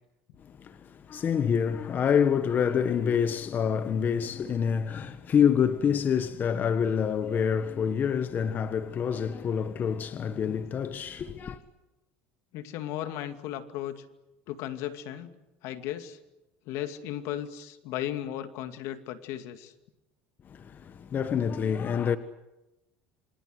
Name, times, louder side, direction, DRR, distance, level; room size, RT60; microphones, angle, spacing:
voice 1, 0.6-11.6 20.5-22.2, left 7 dB, 35° left, 1.3 m, -27 dB
voice 2, 12.5-14.0 14.5-15.4 15.6-16.2 16.7-19.7, left 12 dB, 65° left, 2.3 m, -35 dB
28.0 x 26.5 x 8.0 m
supercardioid pair, 125°, 5 cm